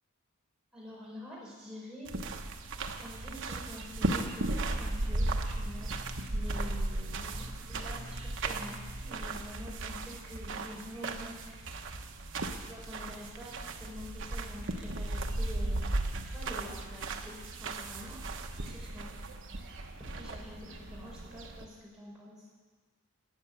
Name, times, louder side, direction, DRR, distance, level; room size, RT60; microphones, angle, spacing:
voice 1, 0.7-2.1 3.0-5.9 6.3-11.6 12.6-18.2 18.6-22.5, equal, 5° right, -7 dB, 5.4 m, -47 dB
sound 1, 2.1-21.7, right 2 dB, 60° right, 1.0 m, -36 dB
13.5 x 8.5 x 8.7 m, 1.4 s
head